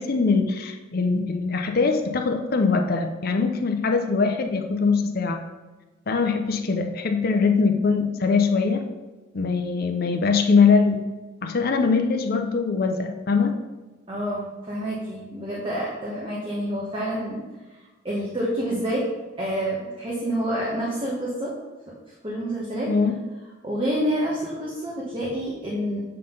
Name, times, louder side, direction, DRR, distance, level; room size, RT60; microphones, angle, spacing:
voice 1, 0.0-5.4 6.1-8.8 9.3-11.0 11.4-13.6 22.9-23.1, left 4 dB, 50° left, 5 dB, 0.5 m, -22 dB
voice 2, 14.1-17.5 18.0-19.0 19.4-21.5 22.2-22.9 23.6-26.0, equal, 25° right, -5 dB, 1.2 m, -28 dB
7.7 x 3.9 x 5.2 m, 1.2 s
head